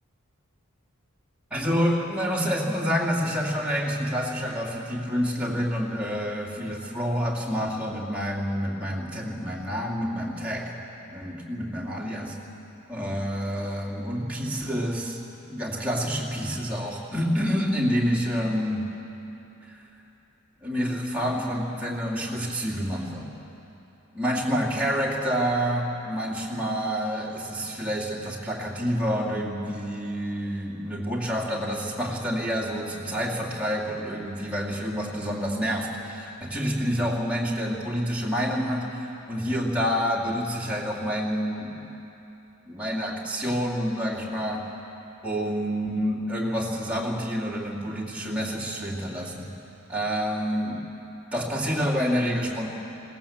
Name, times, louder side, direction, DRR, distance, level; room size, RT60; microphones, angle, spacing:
voice 1, 1.5-10.7 11.1-12.4 12.9-15.2 15.5-18.9 19.7-19.8 20.6-23.3 24.1-41.9 42.7-44.7 45.2-49.5 49.9-50.8 51.3-52.7, equal, 5° right, -4 dB, 2.4 m, -28 dB
20.5 x 17.5 x 7.2 m, 2.9 s
head